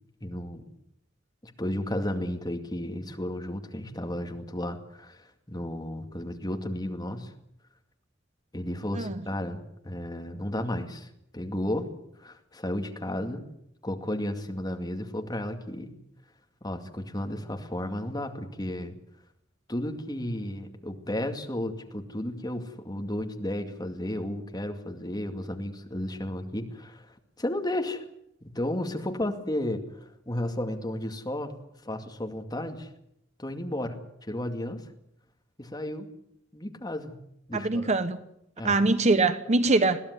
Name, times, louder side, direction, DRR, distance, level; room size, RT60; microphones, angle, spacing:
voice 1, 0.2-0.7 1.4-7.3 8.5-11.9 12.2-13.5 13.8-16.0 16.6-19.0 19.7-28.0 28.4-31.6 31.8-32.9 33.4-34.8 35.6-36.1 36.5-37.2 37.5-37.9 38.6-38.8, left 1 dB, 20° left, 5 dB, 2.3 m, -33 dB
voice 2, 37.5-38.2 38.6-40.0, right 3 dB, 35° right, 12 dB, 1.0 m, -23 dB
21.5 x 15.5 x 9.6 m, 0.77 s
head